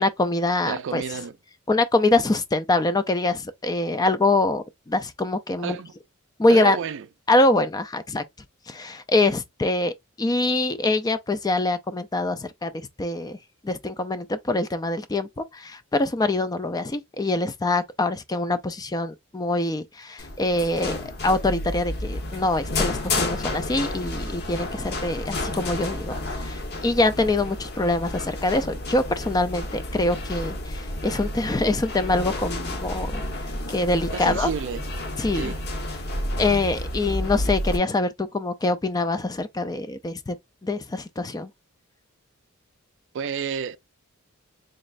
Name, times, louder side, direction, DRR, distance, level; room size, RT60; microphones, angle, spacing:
voice 1, 0.0-1.0 1.7-5.8 6.4-6.8 7.3-8.2 8.7-9.9 10.2-12.7 13.0-13.4 13.6-21.0 21.2-33.2 33.7-34.5 35.2-35.5 36.4-40.4 40.6-41.5, left 2 dB, 20° left, 0.4 m, -24 dB
voice 2, 0.7-1.4 5.6-5.9 6.5-7.1 34.1-34.8 35.3-35.6 43.1-43.8, right 7 dB, 60° right, 0.4 m, -30 dB
sound 1, 20.2-37.8, left 1 dB, 50° left, 1.0 m, -31 dB
4.1 x 3.1 x 2.5 m
head